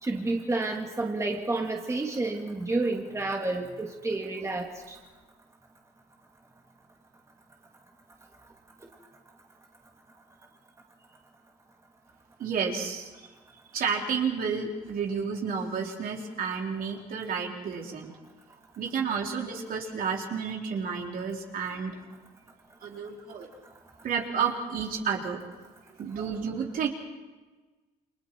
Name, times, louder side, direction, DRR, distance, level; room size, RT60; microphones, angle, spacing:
voice 1, 0.0-5.0, right 2 dB, 15° right, 1 dB, 2.4 m, -30 dB
voice 2, 12.4-13.3 13.7-18.1 18.8-22.0 22.8-23.5 24.0-25.4 26.0-26.9, right 6 dB, 60° right, 0 dB, 3.9 m, -31 dB
29.5 x 24.5 x 4.7 m, 1.3 s
cardioid pair, 110°, 17 cm